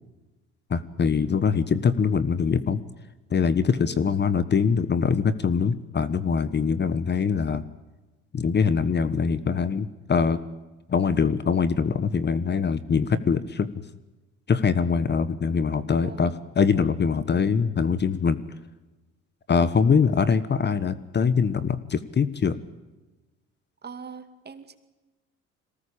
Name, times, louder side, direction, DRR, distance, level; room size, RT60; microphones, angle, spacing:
voice 1, 0.7-2.8 3.3-7.6 8.3-10.4 10.9-13.7 14.5-18.4 19.5-22.5, left 6 dB, 35° left, 15 dB, 1.3 m, -23 dB
voice 2, 23.8-24.8, right 5 dB, 30° right, 9 dB, 2.4 m, -41 dB
22.5 x 19.0 x 8.7 m, 1.1 s
supercardioid pair, 80°, 31 cm